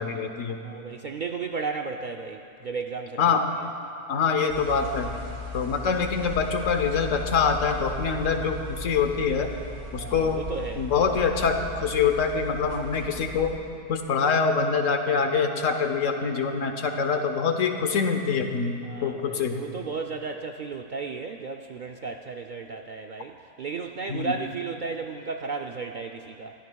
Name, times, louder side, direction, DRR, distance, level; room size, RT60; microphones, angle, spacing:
voice 1, 0.0-0.6 3.2-3.5 4.1-5.1 5.5-9.5 9.9-10.4 10.8-13.5 13.9-19.6 24.1-24.3, left 5 dB, 85° left, 5 dB, 1.3 m, -25 dB
voice 2, 0.6-3.4 9.9-10.8 18.8-26.5, right 4 dB, 60° right, 3 dB, 0.5 m, -34 dB
sound 1, 4.5-13.5, left 3 dB, 75° right, 1.9 m, -37 dB
22.5 x 14.5 x 2.3 m, 2.6 s
omnidirectional pair, 1.3 m